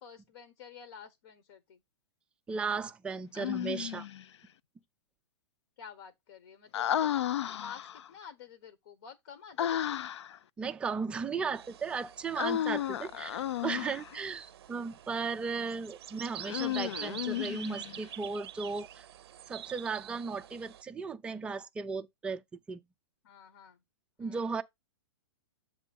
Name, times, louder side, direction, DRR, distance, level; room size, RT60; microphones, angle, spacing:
voice 1, 0.0-1.8 5.8-10.0 12.7-13.3 14.1-14.5 16.1-16.2 23.2-23.8 24.2-24.5, left 7 dB, 60° left, 1.2 m, -51 dB
voice 2, 2.5-4.1 10.6-19.1 19.5-22.4 22.7-22.8 24.2-24.6, right 5 dB, 5° right, 0.3 m, -36 dB
Human voice, 3.4-4.2 6.7-8.1 9.6-10.4 12.4-14.2 16.4-18.0, left 11 dB, 80° left, 0.4 m, -33 dB
sound 1, 11.5-20.8, right 11 dB, 60° right, 0.5 m, -47 dB
7.4 x 3.1 x 5.2 m
hypercardioid pair, 145°, 14 cm